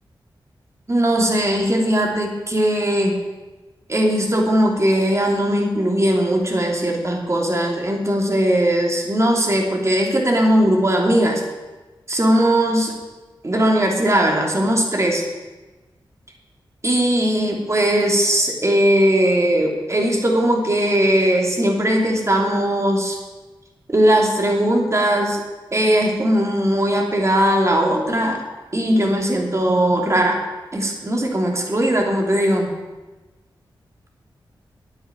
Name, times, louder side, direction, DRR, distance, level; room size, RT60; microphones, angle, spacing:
voice 1, 0.9-3.2 3.9-11.4 12.1-12.9 13.4-15.2 16.8-23.2 23.9-25.4 25.7-28.4 28.7-30.4 30.7-32.8, right 1 dB, 35° right, 0 dB, 3.0 m, -19 dB
9.9 x 9.0 x 7.6 m, 1.2 s
cardioid pair, 55°, 9 cm